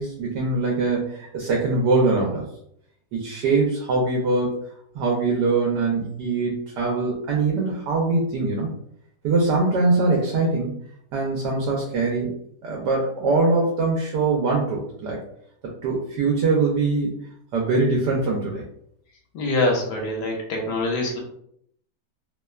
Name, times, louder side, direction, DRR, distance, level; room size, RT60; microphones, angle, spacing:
voice 1, 0.0-2.4 3.1-4.6 4.9-8.7 9.2-10.7 11.1-15.2 15.8-17.1 17.5-18.7, right 3 dB, 80° right, -1 dB, 1.2 m, -22 dB
voice 2, 19.3-21.2, left 2 dB, 80° left, 1 dB, 1.3 m, -24 dB
3.2 x 2.1 x 2.3 m, 0.70 s
omnidirectional pair, 1.8 m